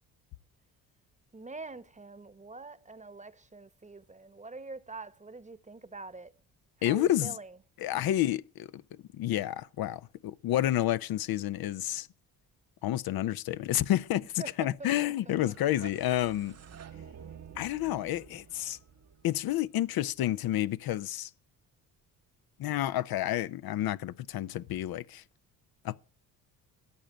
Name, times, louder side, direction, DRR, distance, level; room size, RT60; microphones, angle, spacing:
voice 1, 1.3-6.3 6.8-7.6 14.4-15.5, right 3 dB, 15° right, 1.1 m, -45 dB
voice 2, 6.8-7.3 7.8-8.8 9.1-12.1 12.8-16.6 17.6-18.8 19.2-21.3 22.6-25.2 25.8-26.0, left 13 dB, 60° left, 0.7 m, -30 dB
sound 1, 15.4-20.3, right 7 dB, 40° right, 1.0 m, -50 dB
14.0 x 8.9 x 7.8 m
supercardioid pair, 60°, 41 cm